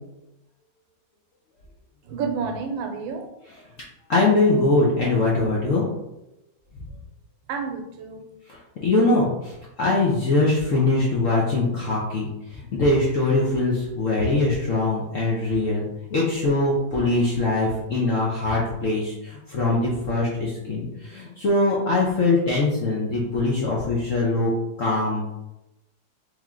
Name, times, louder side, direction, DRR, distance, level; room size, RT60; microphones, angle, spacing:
voice 1, 2.0-3.3 7.5-8.2, right 5 dB, 85° right, 5 dB, 1.4 m, -30 dB
voice 2, 4.1-5.8 8.5-24.5 24.8-25.2, left 2 dB, 65° left, -4 dB, 0.8 m, -22 dB
3.5 x 3.1 x 3.6 m, 0.91 s
omnidirectional pair, 2.1 m